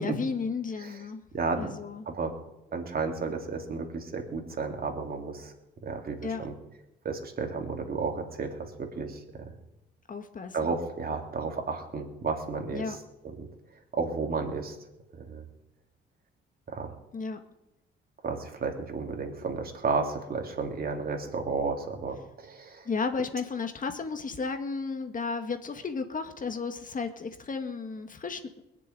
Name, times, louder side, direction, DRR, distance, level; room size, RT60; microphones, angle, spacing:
voice 1, 0.0-1.2 1.6-2.1 6.2-6.5 10.1-10.7 12.7-13.0 17.1-17.4 22.9-28.4, left 4 dB, 40° left, 7 dB, 1.9 m, -33 dB
voice 2, 1.3-1.7 2.1-2.3 2.7-5.5 5.8-6.5 7.0-9.2 10.5-13.0 13.2-13.5 13.9-14.7 15.2-15.4 16.7-16.9 18.2-22.8, right 4 dB, 45° right, 3 dB, 3.0 m, -32 dB
20.5 x 7.0 x 9.5 m, 0.94 s
cardioid pair, 80°, 20 cm